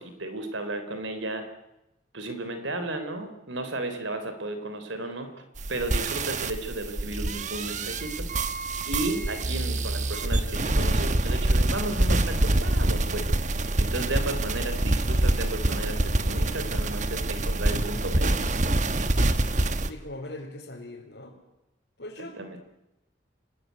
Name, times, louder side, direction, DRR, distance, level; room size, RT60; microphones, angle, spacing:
voice 1, 0.0-1.4 2.1-5.3 5.7-8.3 8.9-13.2 13.8-18.4 22.2-22.6, right 2 dB, 90° right, 8 dB, 3.7 m, -34 dB
sound 1, 5.6-19.9, right 1 dB, 40° right, 1.2 m, -26 dB
voice 2, 19.9-21.4 22.0-22.6, left 1 dB, 70° left, -5 dB, 4.5 m, -40 dB
27.5 x 18.5 x 9.5 m, 0.93 s
head